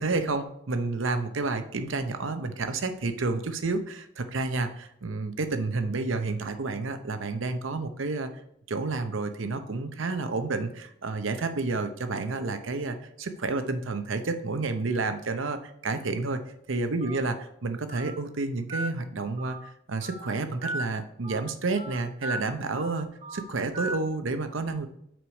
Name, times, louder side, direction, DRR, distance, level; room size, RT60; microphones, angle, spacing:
voice 1, 0.0-8.3 8.7-16.4 16.7-24.9, right 3 dB, 70° right, 8 dB, 0.7 m, -30 dB
Telephone, 17.0-17.2 17.9-18.1 18.7-18.9 19.4-19.6 20.0-20.2 20.6-20.8 21.2-21.4 21.8-21.9 22.2-22.4 22.7-22.9 23.2-23.4 23.7-24.0, right 2 dB, 35° right, 1.4 m, -35 dB
6.1 x 4.8 x 5.2 m, 0.74 s
head